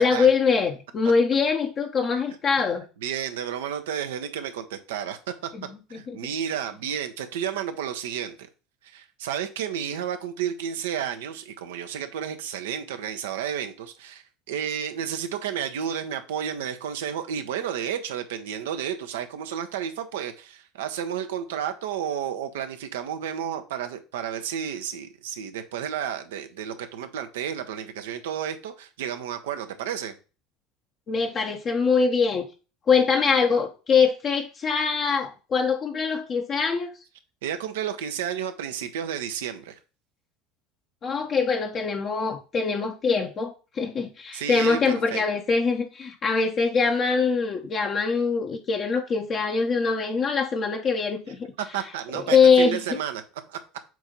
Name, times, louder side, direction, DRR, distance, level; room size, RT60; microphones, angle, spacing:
voice 1, 0.0-2.8 5.6-5.7 5.9-6.2 31.1-32.5 32.9-36.9 41.0-51.5 52.1-52.8, left 5 dB, 40° left, 1.0 m, -23 dB
voice 2, 3.0-5.5 5.9-8.4 8.8-30.1 37.4-39.8 44.3-45.2 51.7-53.2 53.5-53.6, right 9 dB, 75° right, 0.8 m, -31 dB
7.7 x 2.7 x 5.3 m
hypercardioid pair, 75°, 0 cm